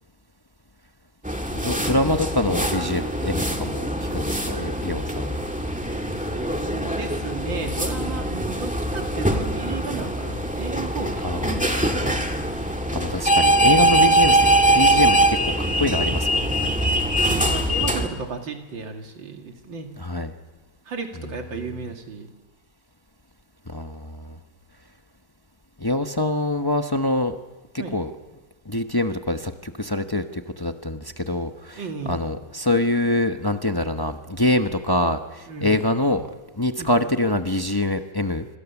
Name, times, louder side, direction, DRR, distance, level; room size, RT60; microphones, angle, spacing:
sound 1, 1.2-18.1, right 1 dB, 5° right, 1.8 m, -22 dB
voice 1, 1.5-5.5 11.2-12.0 12.9-14.5 14.7-16.6 20.0-20.3 23.7-24.4 25.8-27.3 27.7-28.1 28.7-36.3 36.6-38.5, left 1 dB, 25° left, 6 dB, 0.4 m, -25 dB
voice 2, 6.4-12.2 17.2-19.9 20.9-22.3 27.8-27.9 31.8-32.2 35.5-35.9 36.8-36.9, right 4 dB, 70° right, 3 dB, 3.0 m, -34 dB
26.5 x 24.5 x 7.1 m, 1.2 s
omnidirectional pair, 2.2 m